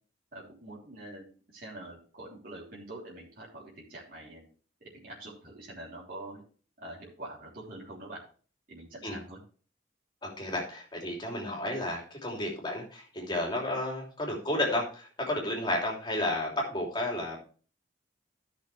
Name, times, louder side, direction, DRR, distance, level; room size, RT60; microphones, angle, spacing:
voice 1, 0.3-4.5 4.8-6.4 6.8-8.2 8.7-9.4, right 1 dB, 50° right, -7 dB, 3.5 m, -45 dB
voice 2, 10.2-17.4, left 1 dB, 25° left, -2 dB, 3.0 m, -32 dB
15.0 x 6.2 x 3.4 m, 0.39 s
head